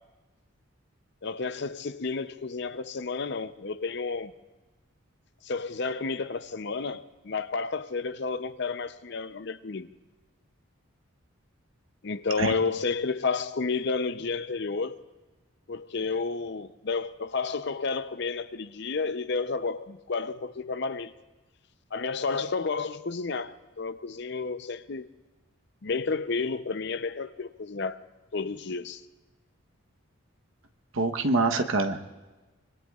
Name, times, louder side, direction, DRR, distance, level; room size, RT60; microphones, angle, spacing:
voice 1, 1.2-4.3 5.4-9.9 12.0-15.0 15.7-21.1 21.9-25.1 25.8-28.0 28.3-29.0, left 4 dB, 55° left, 0.6 m, -31 dB
voice 2, 30.9-32.1, right 3 dB, 70° right, 1.0 m, -25 dB
25.0 x 23.5 x 2.4 m
head